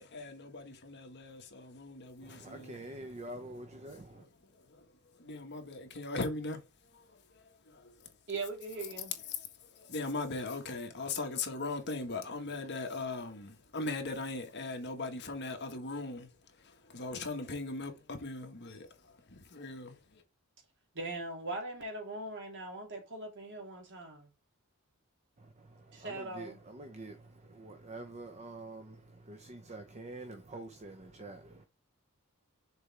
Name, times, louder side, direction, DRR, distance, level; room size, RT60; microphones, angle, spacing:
voice 1, 0.0-2.8 4.1-4.8 5.2-6.6 6.9-8.1 9.3-16.3 16.6-20.2, left 3 dB, 50° left, 1.6 m, -40 dB
voice 2, 2.2-4.2 25.4-31.7, right 2 dB, 30° right, 0.8 m, -47 dB
voice 3, 8.3-9.1 20.9-24.3 25.9-26.6, right 2 dB, 55° right, 2.9 m, -40 dB
6.6 x 4.6 x 3.4 m
head